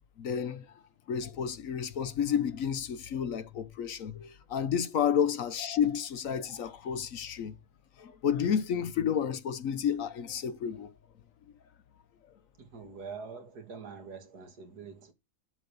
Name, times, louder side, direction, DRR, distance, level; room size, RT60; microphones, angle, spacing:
voice 1, 0.2-0.8 1.1-7.5 8.0-10.9, left 8 dB, 65° left, 1.1 m, -31 dB
voice 2, 12.6-15.1, right 5 dB, 85° right, 2.2 m, -45 dB
11.5 x 4.1 x 6.7 m
omnidirectional pair, 1.6 m